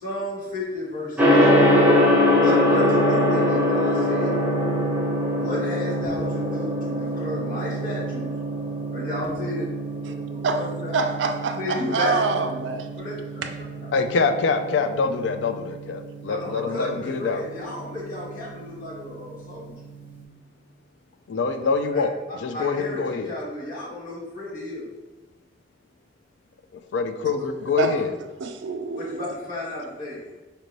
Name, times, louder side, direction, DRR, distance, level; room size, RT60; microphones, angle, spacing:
voice 1, 0.0-1.7 2.4-4.3 5.4-8.3 8.9-9.7 10.6-10.9 11.5-12.4 13.0-13.2 16.3-19.7 21.8-22.0 22.5-24.9 27.8-28.0 28.9-30.2, left 1 dB, 50° left, -7 dB, 1.5 m, -32 dB
Gong, 1.2-20.1, left 1 dB, 10° right, 0.7 m, -24 dB
voice 2, 10.9-12.9 13.4-13.5 27.8-27.9 28.4-29.3, right 4 dB, 80° right, 6 dB, 0.4 m, -26 dB
voice 3, 13.9-17.4 21.3-23.3 26.7-28.1, left 4 dB, 80° left, 8 dB, 0.3 m, -25 dB
4.3 x 2.6 x 3.1 m, 1.1 s
head